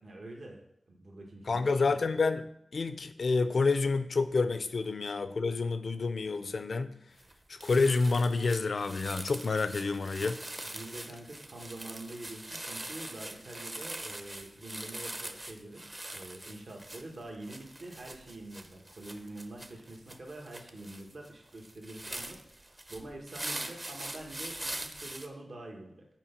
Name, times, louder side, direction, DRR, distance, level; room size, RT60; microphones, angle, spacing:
voice 1, 0.0-0.6 0.9-2.0 10.6-15.9 16.1-26.1, right 2 dB, 65° right, 0 dB, 1.3 m, -45 dB
voice 2, 1.5-6.9 7.5-10.4, left 4 dB, 65° left, 12 dB, 0.5 m, -29 dB
sound 1, 7.2-7.3 7.6-25.3, right 1 dB, 30° right, 0.7 m, -43 dB
6.0 x 4.4 x 5.7 m, 0.75 s
cardioid pair, 50°, 0 cm